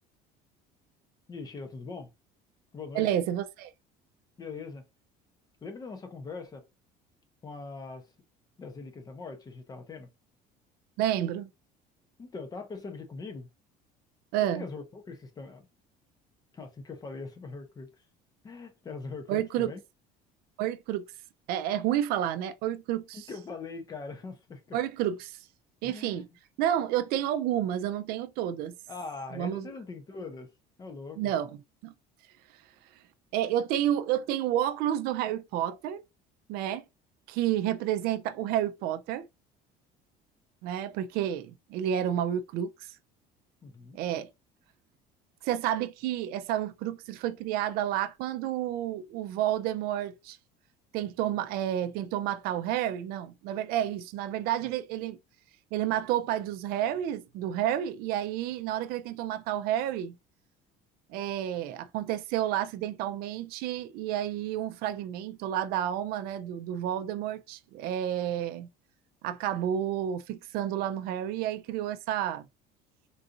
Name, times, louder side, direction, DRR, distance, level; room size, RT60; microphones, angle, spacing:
voice 1, 1.3-2.1 2.7-3.1 4.4-4.9 5.6-6.6 7.4-8.1 8.6-10.1 12.2-13.5 14.5-15.6 16.5-17.9 18.4-19.8 23.1-24.8 25.8-26.4 28.9-30.5 30.8-31.2 43.6-44.0 54.6-54.7, left 4 dB, 20° left, 0.6 m, -41 dB
voice 2, 2.9-3.7 11.0-11.5 14.3-14.7 19.3-19.7 20.6-21.1 21.5-23.3 24.7-25.5 25.8-26.3 26.6-28.7 29.3-29.7 31.2-31.9 33.3-36.0 36.5-36.8 37.3-39.3 40.6-43.0 43.9-44.3 45.4-50.4 50.9-55.2 55.7-60.2 61.1-68.7 69.2-72.5, right 11 dB, 65° right, 0.4 m, -30 dB
3.8 x 2.5 x 2.5 m
cardioid pair, 160°, 17 cm